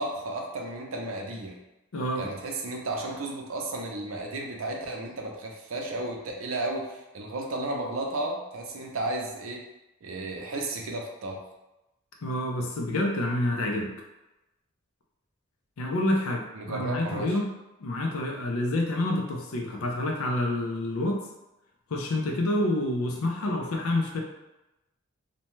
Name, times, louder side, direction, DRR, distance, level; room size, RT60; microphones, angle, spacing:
voice 1, 0.0-1.6 2.1-9.6 10.0-11.4 16.5-17.4, right 2 dB, 75° right, 1 dB, 0.5 m, -33 dB
voice 2, 1.9-2.3 12.2-13.9 15.8-17.5 17.8-21.2 21.9-24.2, left 1 dB, 85° left, 1 dB, 0.5 m, -28 dB
2.7 x 2.2 x 3.0 m, 0.97 s
head